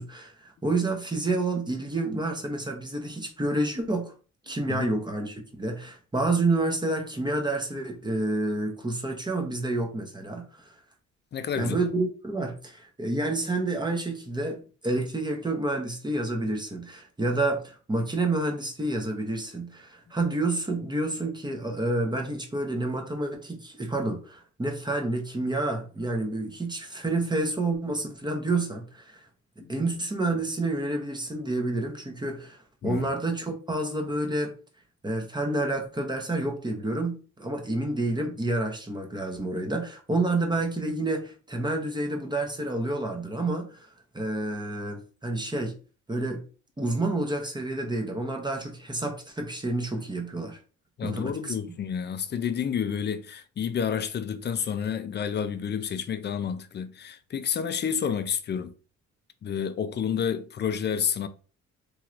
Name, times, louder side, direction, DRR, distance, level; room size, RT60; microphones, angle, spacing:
voice 1, 0.0-4.1 4.5-10.7 11.5-29.2 29.7-34.5 35.0-43.9 44.1-45.8 46.1-46.4 46.8-50.6 51.0-51.5, right 2 dB, 15° right, 0.8 m, -29 dB
voice 2, 4.5-4.9 11.3-11.8 29.6-29.7 32.8-33.1 51.0-58.7 59.4-61.3, left 7 dB, 35° left, 0.4 m, -30 dB
3.1 x 2.8 x 2.5 m
cardioid pair, 90°, 30 cm